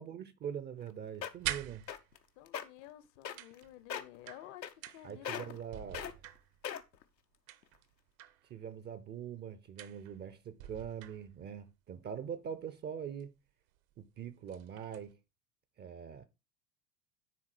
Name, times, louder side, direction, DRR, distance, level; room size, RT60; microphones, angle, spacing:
voice 1, 0.0-1.8 5.0-6.1 8.5-13.3 14.0-15.2 15.8-16.2, right 8 dB, 20° right, 0.5 m, -43 dB
sound 1, 0.8-0.9 1.2-1.5 1.9-2.2 2.5-2.6 3.3-3.6 3.9-4.2 4.6-5.0 5.3-5.6 5.9-6.1 6.6-7.0 7.6-7.7, left 8 dB, 85° left, 0.9 m, -39 dB
sound 2, 1.1-2.4 3.4-5.3 5.6-6.8 7.5-8.5 9.8-10.3 10.6-11.6 13.2-13.3 13.8-13.9 14.3-15.1, right 13 dB, 55° right, 0.8 m, -45 dB
voice 2, 2.4-5.5, left 13 dB, 50° left, 0.8 m, -52 dB
10.0 x 3.8 x 4.5 m
figure-of-eight pair, 80°, 49 cm